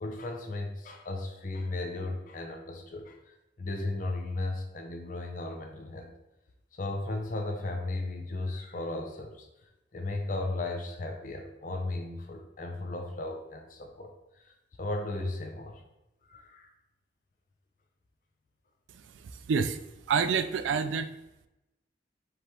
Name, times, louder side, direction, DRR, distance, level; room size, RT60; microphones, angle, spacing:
voice 1, 0.0-6.1 6.7-9.5 9.9-14.1 14.4-15.8 16.3-16.7, left 2 dB, 45° left, 2 dB, 0.5 m, -35 dB
voice 2, 18.9-19.8 20.1-21.1, right 6 dB, 85° right, 11 dB, 0.3 m, -28 dB
5.1 x 3.1 x 3.0 m, 0.91 s
head